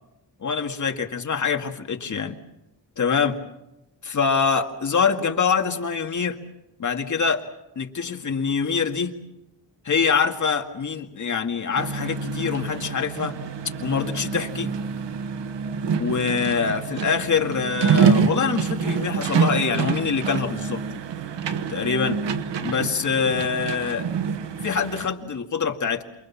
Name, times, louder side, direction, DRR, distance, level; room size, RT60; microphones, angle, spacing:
voice 1, 0.4-2.4 3.0-3.4 4.0-6.4 6.8-7.4 7.8-9.1 9.8-13.4 13.8-14.7 16.0-20.8 21.7-22.2 22.6-24.1 24.6-26.0, left 6 dB, 45° left, 4 dB, 2.1 m, -24 dB
sound 1, 11.8-25.1, right 6 dB, 75° right, 1.4 m, -26 dB
28.5 x 22.0 x 7.3 m, 0.87 s
wide cardioid pair, 145°, 43 cm